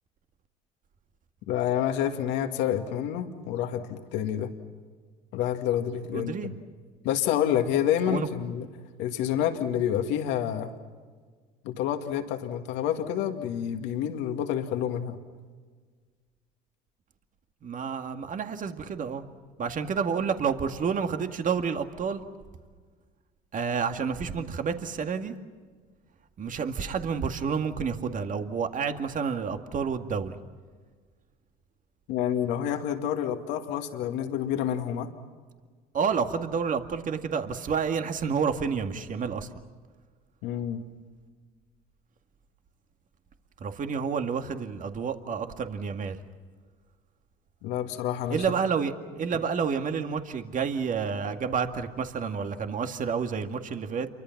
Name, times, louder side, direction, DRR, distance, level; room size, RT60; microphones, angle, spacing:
voice 1, 1.5-4.5 5.3-6.5 7.0-8.7 9.0-10.7 11.6-15.2 32.1-35.1 40.4-40.8 47.6-48.4, left 10 dB, 75° left, 5 dB, 2.2 m, -28 dB
voice 2, 6.1-6.5 8.1-8.3 17.6-19.2 19.6-22.2 23.5-25.4 26.4-30.4 35.9-39.5 43.6-46.2 48.3-54.1, right 6 dB, 45° right, 6 dB, 2.1 m, -29 dB
28.5 x 24.0 x 6.0 m, 1.5 s
supercardioid pair, 75°, 19 cm